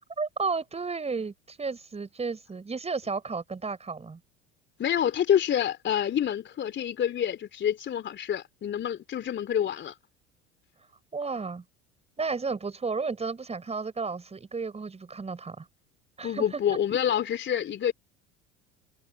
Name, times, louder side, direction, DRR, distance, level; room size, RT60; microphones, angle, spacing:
voice 1, 0.2-4.2 11.1-11.6 12.2-15.7 16.2-16.8, right 4 dB, 20° right, 5.2 m, -33 dB
voice 2, 4.8-9.9 16.2-17.9, left 9 dB, 35° left, 3.3 m, -27 dB
figure-of-eight pair, 70°, 34 cm